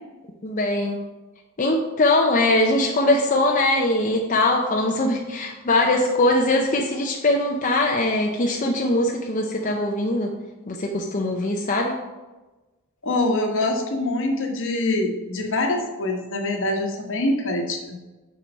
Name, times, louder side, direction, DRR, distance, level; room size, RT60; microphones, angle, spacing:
voice 1, 0.4-1.0 1.6-10.3 10.7-12.0, left 2 dB, 35° left, 0 dB, 0.7 m, -21 dB
voice 2, 13.0-18.0, left 2 dB, 60° left, 3 dB, 1.3 m, -24 dB
6.9 x 4.9 x 5.4 m, 1.1 s
head